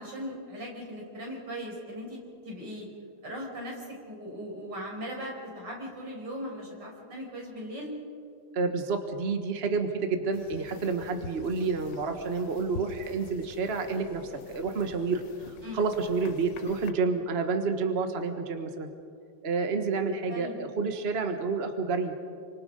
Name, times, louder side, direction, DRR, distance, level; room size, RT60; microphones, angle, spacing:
voice 1, 0.0-2.9 3.2-8.0 15.6-15.8 20.3-20.6, equal, 85° right, -2 dB, 6.4 m, -39 dB
voice 2, 8.5-18.9 19.4-22.1, right 4 dB, 40° right, 6 dB, 1.5 m, -29 dB
sound 1, 10.3-16.9, left 5 dB, 85° left, 1.6 m, -46 dB
28.5 x 25.5 x 5.3 m, 2.4 s
omnidirectional pair, 1.9 m